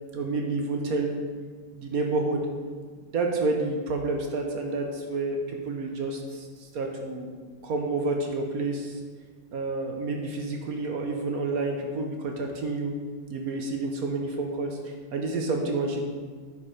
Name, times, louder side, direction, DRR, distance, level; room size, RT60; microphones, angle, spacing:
voice 1, 0.1-1.2 1.7-2.5 3.1-7.3 7.6-9.0 9.5-12.9 13.3-16.1, right 3 dB, 55° right, 2 dB, 1.1 m, -29 dB
9.9 x 4.7 x 5.0 m, 1.5 s
omnidirectional pair, 2.3 m